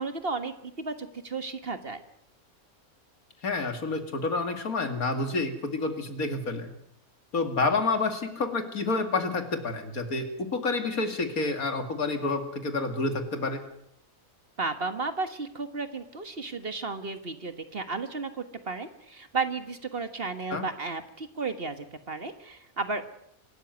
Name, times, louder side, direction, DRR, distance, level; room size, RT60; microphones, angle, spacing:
voice 1, 0.0-2.0 14.6-23.1, right 4 dB, 40° right, 9 dB, 1.7 m, -33 dB
voice 2, 3.4-6.7 7.3-13.6 20.5-20.6, left 3 dB, 75° left, 7 dB, 2.8 m, -29 dB
25.0 x 13.0 x 9.5 m, 0.75 s
omnidirectional pair, 1.5 m